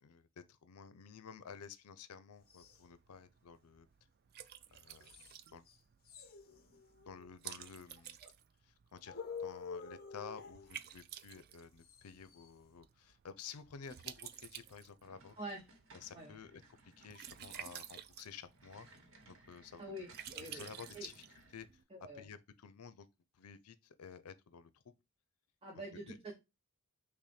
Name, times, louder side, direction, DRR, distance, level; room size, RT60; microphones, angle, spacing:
voice 1, 0.0-3.9 4.7-5.6 6.9-8.2 8.6-15.4 15.9-18.9 19.3-20.0 20.4-23.1 23.3-25.0 26.1-26.2, left 6 dB, 85° left, 0.5 m, -52 dB
Liquid, 2.4-21.8, right 10 dB, 45° right, 0.3 m, -53 dB
sound 1, 2.5-2.8 5.0-5.4 5.7-5.8 6.0-7.3 9.1-10.7 11.8-12.5, left 5 dB, 40° left, 0.7 m, -48 dB
sound 2, 15.0-21.7, right 2 dB, 65° right, 1.0 m, -62 dB
voice 2, 19.8-20.6 20.9-21.1 21.9-22.2 25.6-26.3, right 1 dB, 25° right, 0.8 m, -46 dB
6.0 x 2.1 x 4.2 m
head